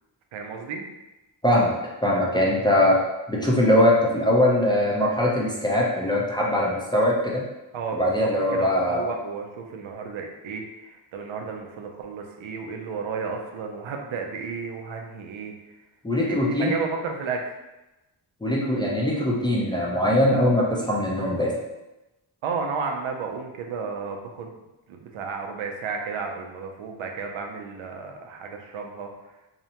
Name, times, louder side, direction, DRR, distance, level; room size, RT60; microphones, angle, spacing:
voice 1, 0.3-0.9 7.7-15.7 16.2-17.4 22.4-24.5 24.9-29.4, right 5 dB, 75° right, 2 dB, 0.5 m, -33 dB
voice 2, 2.0-3.0 3.3-7.4 8.0-9.1 16.0-16.7 18.4-21.5, left 1 dB, 10° left, -4 dB, 0.4 m, -21 dB
2.8 x 2.1 x 2.7 m, 1.0 s
cardioid pair, 85°, 48 cm